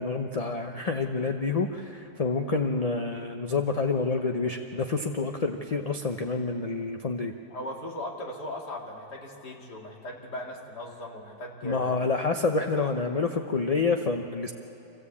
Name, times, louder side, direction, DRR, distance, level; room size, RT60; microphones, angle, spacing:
voice 1, 0.0-7.3 11.6-14.5, left 4 dB, 35° left, 4 dB, 0.6 m, -28 dB
voice 2, 7.5-12.0 12.8-12.9, left 1 dB, 85° left, -1 dB, 3.0 m, -38 dB
25.0 x 16.5 x 8.5 m, 2.9 s
omnidirectional pair, 1.7 m